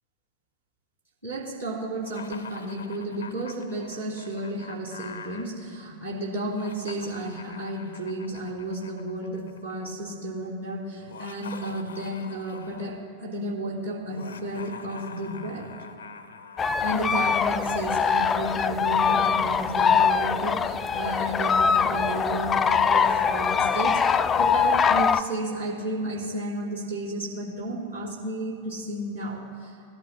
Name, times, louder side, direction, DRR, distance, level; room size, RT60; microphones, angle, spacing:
voice 1, 1.2-15.7 16.6-29.7, right 1 dB, 85° right, -6 dB, 3.1 m, -32 dB
Laughter, 2.0-5.4 6.4-9.7 11.0-13.0 14.1-17.0, left 5 dB, 70° left, 0.6 m, -44 dB
sound 1, 16.6-25.2, left 6 dB, 20° left, 0.3 m, -23 dB
18.5 x 11.5 x 2.2 m, 2.4 s
figure-of-eight pair, 90°, 0 cm